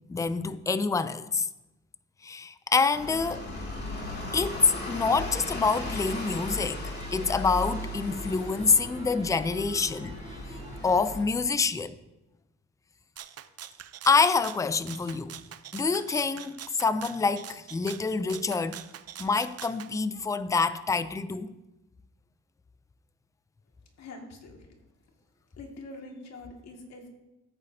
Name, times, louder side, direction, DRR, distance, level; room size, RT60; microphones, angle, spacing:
voice 1, 0.1-1.5 2.2-3.4 4.3-10.2 10.8-12.0 14.1-15.3 15.7-18.8 19.2-21.5, left 4 dB, 10° left, 0.4 m, -26 dB
bus stop, 2.9-11.2, left 2 dB, 35° left, 2.7 m, -37 dB
sound 1, 4.6-11.0, right 2 dB, 15° right, 2.8 m, -47 dB
Rattle (instrument), 13.2-19.9, right 10 dB, 55° right, 0.6 m, -44 dB
voice 2, 24.0-24.6 25.6-27.1, left 2 dB, 60° left, 2.0 m, -44 dB
14.0 x 8.6 x 2.8 m
cardioid pair, 90°, 30 cm